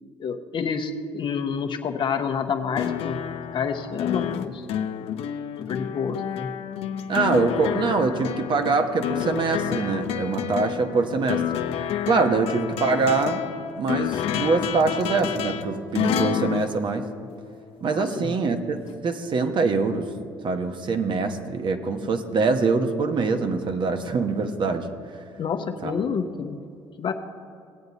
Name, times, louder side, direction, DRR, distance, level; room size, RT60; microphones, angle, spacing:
voice 1, 0.2-3.2 3.5-4.7 5.6-6.5 17.9-18.3 25.4-26.6 27.0-27.1, left 6 dB, 50° left, 5 dB, 0.9 m, -28 dB
sound 1, 2.7-17.7 18.9-19.0, left 9 dB, 70° left, 0.6 m, -29 dB
voice 2, 7.1-11.4 12.0-13.4 13.8-17.1 17.8-18.8 19.0-20.1 20.4-24.9 25.8-25.9, right 4 dB, 50° right, 6 dB, 1.1 m, -24 dB
17.5 x 8.1 x 4.0 m, 2.4 s
supercardioid pair, 75°, 11 cm